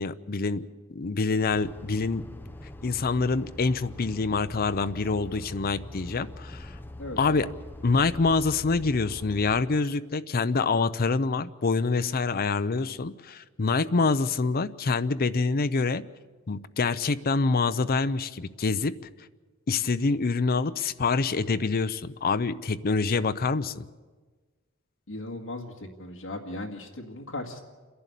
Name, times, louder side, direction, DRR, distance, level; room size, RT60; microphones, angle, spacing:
voice 1, 0.0-2.3 2.8-6.8 7.2-7.5 7.8-16.0 16.5-18.9 19.7-23.8, left 4 dB, 45° left, 12 dB, 0.6 m, -26 dB
sound 1, 1.5-9.6, left 1 dB, 10° left, 0.7 m, -43 dB
voice 2, 7.0-7.4 25.1-27.6, left 2 dB, 65° left, 1 dB, 2.0 m, -37 dB
28.5 x 11.5 x 8.3 m, 1.4 s
head